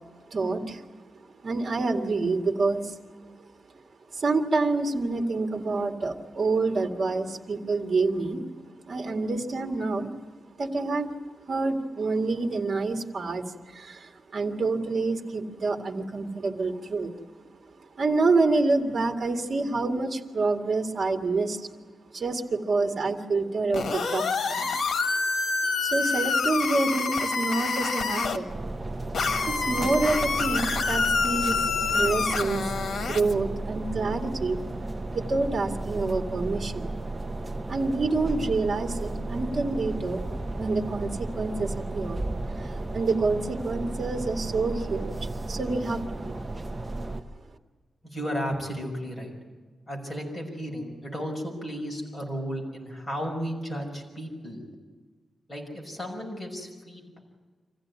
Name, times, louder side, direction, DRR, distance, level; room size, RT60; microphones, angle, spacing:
voice 1, 0.3-0.9 1.4-3.0 4.1-8.4 8.9-10.1 10.6-11.2 11.5-17.1 17.9-21.7 22.1-24.7 25.8-28.5 29.5-31.6 31.9-32.6 33.0-34.6 35.1-37.0 37.7-40.2 40.5-42.3 42.6-46.4, right 3 dB, 45° right, 3 dB, 2.0 m, -27 dB
sound 1, 23.7-28.4 29.1-33.3, left 4 dB, 75° left, 1.7 m, -27 dB
sound 2, 28.5-47.2, right 2 dB, 20° right, 1.0 m, -34 dB
voice 2, 48.0-49.3 49.9-54.6 55.5-57.2, equal, 15° left, -1 dB, 5.9 m, -34 dB
26.0 x 15.5 x 9.6 m, 1.4 s
wide cardioid pair, 165°, 0 cm